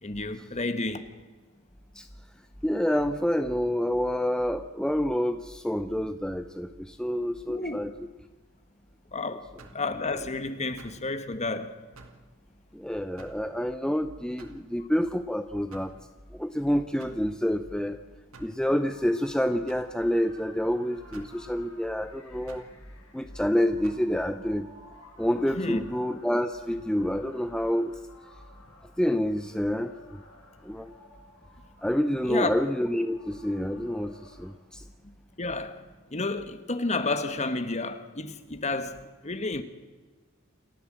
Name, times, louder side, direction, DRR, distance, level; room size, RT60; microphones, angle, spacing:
voice 1, 0.0-1.1 7.5-7.8 9.1-9.5 9.7-11.7 25.6-25.9 32.3-32.6 35.4-35.8 36.1-39.6, left 3 dB, 35° left, 1.4 m, -31 dB
voice 2, 2.6-8.1 12.7-16.0 16.3-18.0 18.4-22.6 23.1-24.7 25.2-27.9 29.0-30.2 30.6-30.9 31.8-34.8, equal, 5° left, 0.7 m, -28 dB
sound 1, 9.6-9.9 10.8-11.1 12.0-12.2 13.2-13.5 14.4-14.7 15.7-16.0 17.0-17.3 18.3-18.6 19.7-19.9 21.1-21.4 22.5-22.7 23.8-24.1, right 3 dB, 70° right, 2.5 m, -49 dB
sound 2, 18.9-34.5, left 2 dB, 75° left, 5.1 m, -54 dB
28.5 x 13.0 x 7.6 m
head